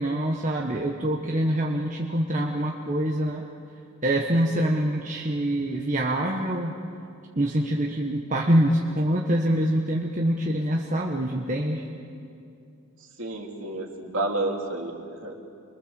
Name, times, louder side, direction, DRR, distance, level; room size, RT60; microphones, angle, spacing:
voice 1, 0.0-3.4 4.0-6.7 7.3-11.8, right 1 dB, 35° right, -1 dB, 1.4 m, -25 dB
voice 2, 13.0-15.4, right 2 dB, 60° right, 0 dB, 3.3 m, -30 dB
28.5 x 23.5 x 7.2 m, 2.5 s
head